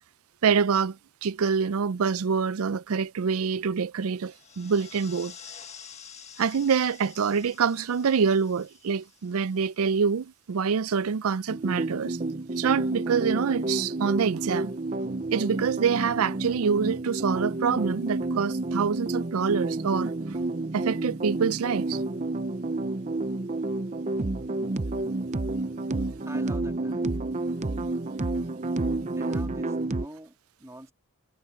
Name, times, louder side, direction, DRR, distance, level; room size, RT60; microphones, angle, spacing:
voice 1, 0.4-5.3 6.4-12.2 12.5-14.7 15.3-20.4 20.7-22.0, right 6 dB, 70° right, 0.4 m, -26 dB
sound 1, 4.2-10.0, left 8 dB, 30° left, 1.6 m, -48 dB
sound 2, 11.5-30.0, right 2 dB, 30° right, 0.7 m, -30 dB
voice 2, 26.2-27.0 29.1-30.9, right 1 dB, 15° right, 2.5 m, -45 dB
head